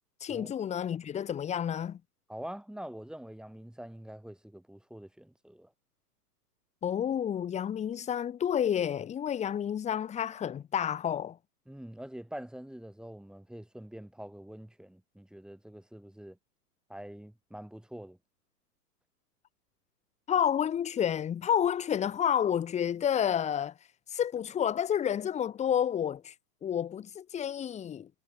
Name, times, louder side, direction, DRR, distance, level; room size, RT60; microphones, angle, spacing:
voice 1, 0.2-2.0 6.8-11.4 20.3-23.7 24.1-26.3 26.6-28.1, left 9 dB, 15° left, 1.3 m, -30 dB
voice 2, 2.3-5.7 11.7-16.4 16.9-18.2, right 1 dB, ahead, 3.2 m, -45 dB
figure-of-eight pair, 105°, 48 cm